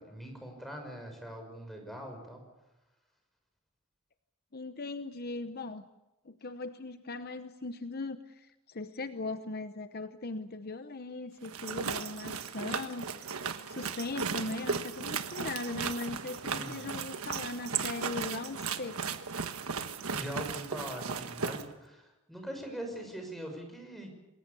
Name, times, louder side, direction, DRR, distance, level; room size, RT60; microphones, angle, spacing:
voice 1, 0.0-2.4 16.5-16.9 20.1-24.1, equal, ahead, 3 dB, 6.0 m, -42 dB
voice 2, 4.5-5.9 6.2-13.4 13.7-19.0, left 3 dB, 45° left, 10 dB, 0.9 m, -39 dB
sound 1, 11.4-21.6, right 5 dB, 85° right, 1.4 m, -36 dB
28.0 x 20.5 x 6.9 m, 0.99 s
head